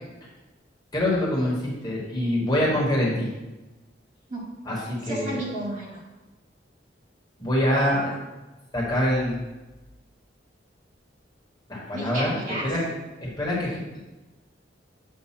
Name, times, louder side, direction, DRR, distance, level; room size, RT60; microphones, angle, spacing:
voice 1, 0.9-3.3 4.6-5.4 7.4-8.1 8.7-9.4 11.7-12.3 12.6-12.8 13.2-14.0, left 1 dB, 20° left, -5 dB, 1.4 m, -25 dB
voice 2, 4.3-6.0 7.7-8.1 11.9-12.6, right 2 dB, 45° right, -5 dB, 1.7 m, -33 dB
7.6 x 2.6 x 5.8 m, 1.1 s
head